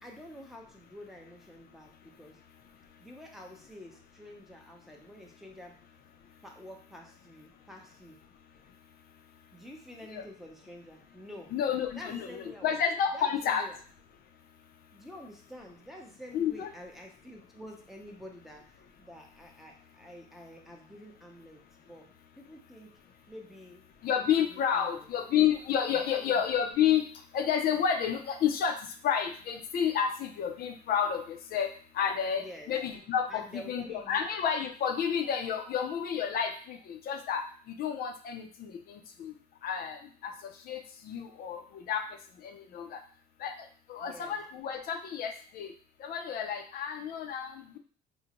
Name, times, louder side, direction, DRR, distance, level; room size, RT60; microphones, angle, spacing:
voice 1, 0.0-1.9 2.2-2.4 3.0-5.8 6.4-8.2 9.5-11.6 11.9-12.8 13.1-13.8 14.9-22.1 22.4-23.0 23.3-23.8 24.5-25.1 25.9-26.4 32.4-32.7 33.3-34.2 44.0-44.4, equal, ahead, -1 dB, 0.7 m, -48 dB
voice 2, 11.5-13.6 16.3-16.7 24.0-27.0 27.3-28.7 29.0-31.7 31.9-37.4 37.8-39.3 39.6-40.3 40.7-40.8 41.0-41.6 41.9-42.0 42.4-43.0 43.4-43.5 43.9-45.7 46.0-47.8, left 8 dB, 65° left, 4 dB, 0.5 m, -30 dB
3.7 x 2.1 x 2.8 m, 0.43 s
cardioid pair, 110°, 17 cm